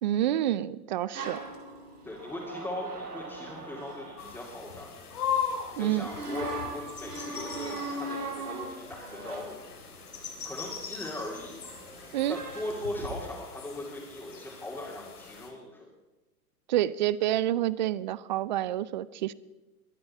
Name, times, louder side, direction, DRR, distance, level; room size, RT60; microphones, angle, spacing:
voice 1, 0.0-1.4 5.8-6.1 12.1-12.4 16.7-19.3, right 13 dB, 35° right, 19 dB, 0.4 m, -28 dB
sound 1, 1.1-5.1 6.0-13.1, right 2 dB, 85° right, 2.9 m, -40 dB
voice 2, 2.0-4.9 5.7-9.5 10.4-11.6 12.3-15.9, left 1 dB, 5° left, -5 dB, 2.7 m, -39 dB
sound 2, 4.2-15.5, left 7 dB, 70° left, 3.1 m, -39 dB
22.0 x 9.6 x 4.4 m, 1.1 s
figure-of-eight pair, 110°, 46 cm